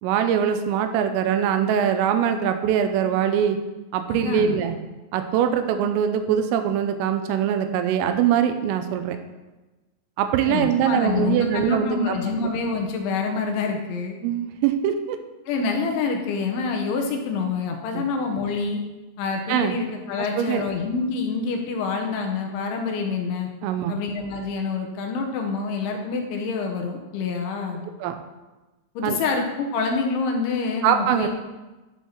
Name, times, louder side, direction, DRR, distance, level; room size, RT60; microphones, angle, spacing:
voice 1, 0.0-3.6 3.9-4.8 5.1-9.2 10.2-12.2 14.2-15.2 17.9-18.0 19.5-19.7 20.2-20.6 23.6-23.9 28.0-28.2 29.0-29.2 30.8-31.3, right 9 dB, 90° right, 7 dB, 3.4 m, -22 dB
voice 2, 4.1-4.6 10.5-14.2 15.5-18.8 19.2-23.5 23.9-27.9 29.0-31.3, left 4 dB, 75° left, 2 dB, 3.1 m, -26 dB
12.0 x 4.6 x 5.9 m, 1.1 s
omnidirectional pair, 5.8 m